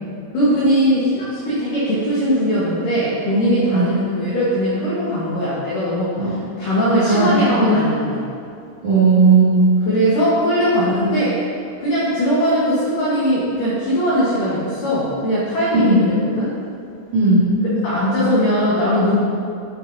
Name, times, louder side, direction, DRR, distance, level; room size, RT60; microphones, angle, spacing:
voice 1, 0.3-6.1 6.6-8.3 9.9-11.4 11.8-16.5 17.8-19.2, equal, 70° left, -8 dB, 2.0 m, -19 dB
voice 2, 7.0-7.8 8.8-9.8 15.7-16.1 17.1-17.5, right 3 dB, 50° right, -12 dB, 2.6 m, -15 dB
10.0 x 8.1 x 2.7 m, 2.5 s
omnidirectional pair, 5.8 m